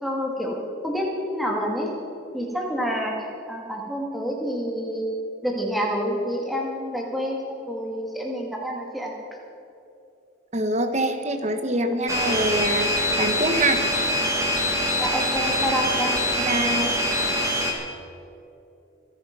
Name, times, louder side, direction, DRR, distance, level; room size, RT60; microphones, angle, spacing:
voice 1, 0.0-1.1 1.3-1.9 2.3-3.2 3.5-5.1 5.4-9.1 15.0-16.2, equal, ahead, -1 dB, 2.2 m, -28 dB
voice 2, 10.5-13.8 16.4-16.9, right 1 dB, 35° right, 8 dB, 1.1 m, -25 dB
sound 1, 12.1-17.7, left 1 dB, 15° right, 1.9 m, -24 dB
25.5 x 9.7 x 5.4 m, 2.8 s
head